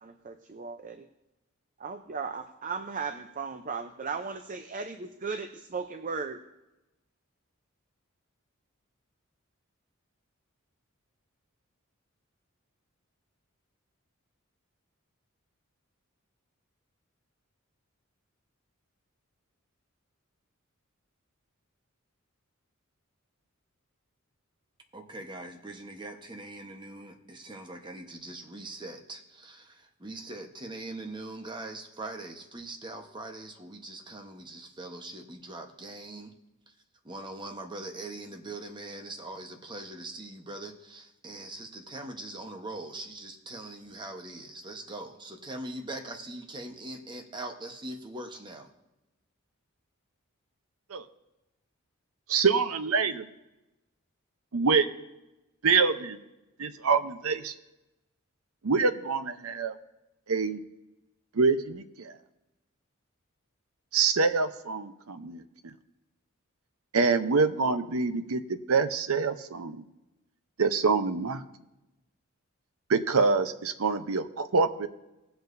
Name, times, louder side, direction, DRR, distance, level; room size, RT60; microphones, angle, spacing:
voice 1, 0.0-1.1 1.8-6.4, right 5 dB, 40° right, 7 dB, 0.6 m, -36 dB
voice 2, 24.9-36.3 36.7-36.8 37.0-48.7, right 2 dB, 20° right, 4 dB, 1.1 m, -42 dB
voice 3, 52.3-53.3 54.5-54.9 55.6-56.2 56.6-57.5 58.6-59.8 60.3-60.6 61.3-62.1 63.9-65.4 66.9-69.8 70.6-71.4 72.9-74.9, right 4 dB, 90° right, 10 dB, 0.7 m, -26 dB
20.0 x 8.0 x 2.6 m, 0.98 s
head